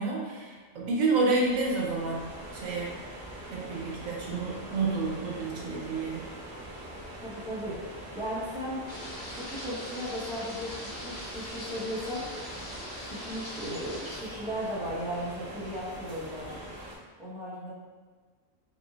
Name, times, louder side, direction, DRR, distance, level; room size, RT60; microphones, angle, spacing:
voice 1, 0.0-2.2 2.5-2.9 3.5-6.2, right 3 dB, 80° right, -2 dB, 1.1 m, -29 dB
sound 1, 1.3-17.0, right 1 dB, 50° right, 1.2 m, -43 dB
voice 2, 7.1-7.8 8.1-9.1 9.3-12.3 13.1-16.6 17.2-17.7, equal, ahead, -9 dB, 0.8 m, -36 dB
sound 2, 8.9-14.2, equal, 20° right, 1.4 m, -42 dB
4.1 x 3.2 x 2.3 m, 1.5 s
omnidirectional pair, 1.4 m